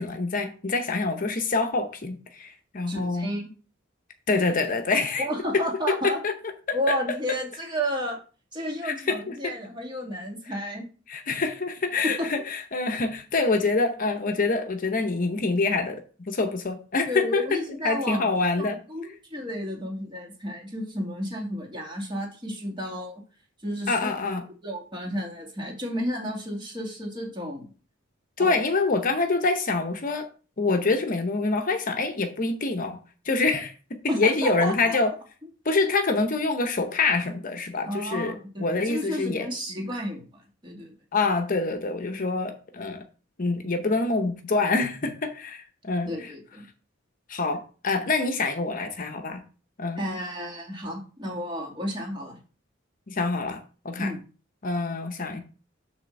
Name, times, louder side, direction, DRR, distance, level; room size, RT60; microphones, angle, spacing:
voice 1, 0.0-3.3 4.3-5.3 5.5-6.3 6.7-7.0 8.8-9.5 11.1-17.4 17.8-18.8 23.9-24.4 28.4-30.3 30.6-33.0 33.2-35.1 35.6-39.5 41.1-43.0 43.4-46.3 47.3-49.4 49.8-50.0 53.1-54.1 54.6-55.4, left 3 dB, 45° left, 6 dB, 0.8 m, -26 dB
voice 2, 2.9-3.5 5.2-6.2 6.7-8.2 8.5-10.8 12.0-12.3 17.1-18.3 18.6-23.2 23.6-24.1 24.6-27.7 28.4-28.6 34.1-35.0 37.9-40.2 40.6-40.9 46.1-46.7 50.0-52.4 54.0-54.2, equal, 25° right, 0 dB, 2.2 m, -32 dB
7.3 x 3.4 x 6.3 m, 0.37 s
head